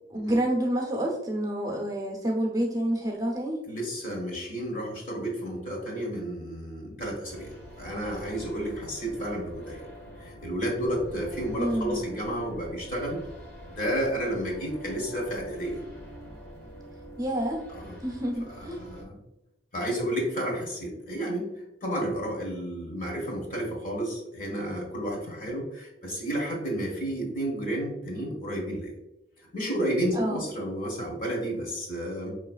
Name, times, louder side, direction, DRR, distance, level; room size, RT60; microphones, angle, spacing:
voice 1, 0.1-3.6 11.6-12.0 17.2-17.6 18.0-18.8 30.1-30.4, right 1 dB, 20° right, -2 dB, 0.8 m, -28 dB
voice 2, 3.6-9.8 10.2-13.2 13.7-15.8 17.7-18.0 18.6-19.2 19.7-29.0 29.4-32.3, right 1 dB, 45° left, -1 dB, 1.4 m, -31 dB
sound 1, 7.2-19.0, right 1 dB, 10° left, 1.0 m, -45 dB
5.3 x 3.1 x 2.3 m, 0.92 s
head